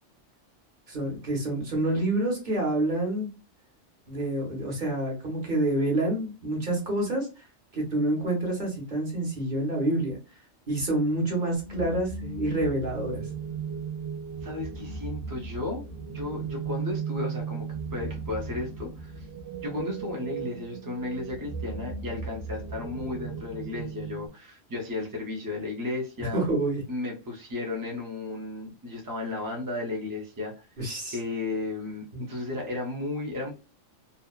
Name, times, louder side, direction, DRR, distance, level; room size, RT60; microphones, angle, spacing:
voice 1, 0.9-3.3 4.1-7.3 7.7-10.2 10.7-13.3 26.2-26.8 30.8-31.2 32.1-32.2, right 1 dB, 40° right, -1 dB, 1.2 m, -27 dB
sound 1, 11.6-24.3, right 5 dB, 70° right, 1.0 m, -36 dB
voice 2, 14.4-19.3 19.6-26.4 26.9-30.7 31.1-33.5, left 2 dB, 25° right, -1 dB, 0.5 m, -34 dB
2.7 x 2.3 x 2.2 m, 0.31 s
omnidirectional pair, 1.3 m